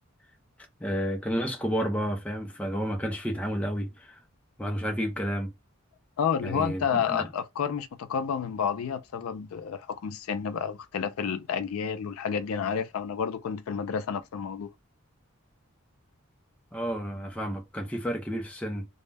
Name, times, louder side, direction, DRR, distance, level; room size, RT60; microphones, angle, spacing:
voice 1, 0.8-4.2 4.6-5.5 6.4-7.3 16.7-18.9, equal, 5° left, 0.4 m, -31 dB
voice 2, 6.2-14.7, left 7 dB, 85° left, 0.4 m, -30 dB
2.1 x 2.1 x 3.3 m
head